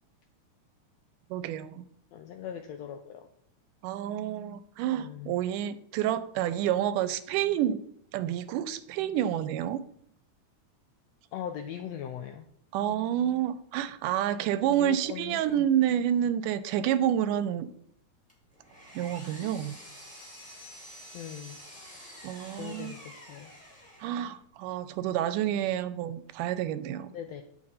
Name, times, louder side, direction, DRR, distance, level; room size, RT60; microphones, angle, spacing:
voice 1, 1.3-1.9 3.8-7.8 8.1-9.8 12.7-17.7 19.0-19.8 22.2-22.9 24.0-27.1, right 11 dB, 90° right, 13 dB, 2.1 m, -29 dB
voice 2, 2.1-3.3 5.0-5.4 11.3-12.5 14.7-15.7 21.1-21.6 21.9-22.1 22.6-23.5 27.1-27.4, left 9 dB, 90° left, 5 dB, 1.5 m, -40 dB
Power tool, 18.3-24.4, equal, 5° left, 2.0 m, -48 dB
9.7 x 5.8 x 4.0 m, 0.69 s
omnidirectional pair, 3.6 m